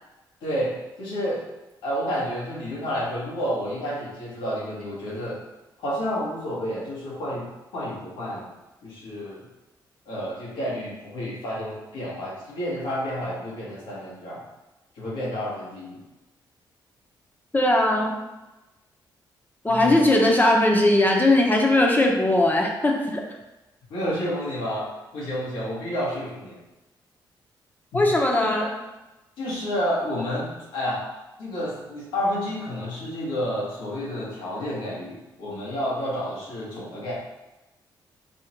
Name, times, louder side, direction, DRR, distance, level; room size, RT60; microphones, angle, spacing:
voice 1, 0.4-1.4 1.8-5.4 5.8-7.5 7.7-8.5 8.8-9.4 10.1-14.4 15.0-16.0 19.7-20.1 23.9-26.6 27.9-28.0 28.3-28.7 29.4-31.0 31.4-37.1, equal, 90° left, -6 dB, 1.4 m, -30 dB
voice 2, 17.5-18.1 19.6-23.2 27.9-28.7, left 1 dB, 20° left, 0 dB, 0.9 m, -19 dB
5.0 x 2.5 x 3.0 m, 1.0 s
cardioid pair, 70°, 9 cm